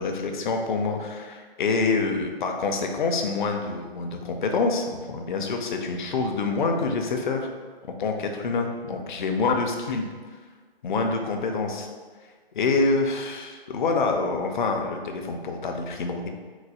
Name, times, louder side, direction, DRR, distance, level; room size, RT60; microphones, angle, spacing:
voice 1, 0.0-7.5 8.0-10.0 10.8-11.9 12.5-16.3, left 4 dB, 50° left, 4 dB, 0.6 m, -26 dB
4.0 x 2.4 x 4.7 m, 1.5 s
hypercardioid pair, 150°, 31 cm